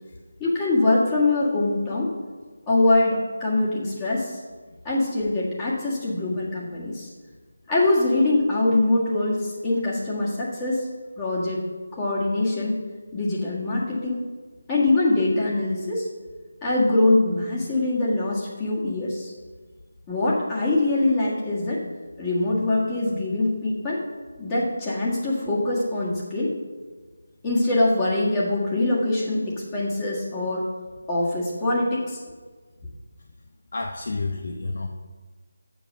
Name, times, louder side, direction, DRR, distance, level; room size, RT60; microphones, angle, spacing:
voice 1, 0.4-2.1 2.7-4.4 4.8-7.1 7.7-10.9 11.2-11.7 11.9-12.7 13.1-14.2 14.7-16.1 16.6-19.3 20.1-21.8 22.2-24.0 24.4-26.5 27.4-30.7 31.1-32.2, left 2 dB, 20° left, -7 dB, 1.6 m, -23 dB
voice 2, 33.7-34.9, left 3 dB, 55° left, 4 dB, 0.7 m, -29 dB
7.8 x 7.2 x 6.2 m, 1.4 s
figure-of-eight pair, 155°, 0 cm